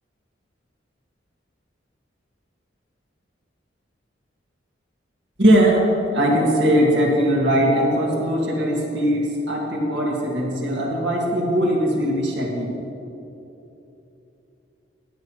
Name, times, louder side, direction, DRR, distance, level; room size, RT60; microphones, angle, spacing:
voice 1, 5.4-5.8 6.1-12.7, equal, 65° right, -2 dB, 2.2 m, -20 dB
16.5 x 9.6 x 3.2 m, 2.9 s
head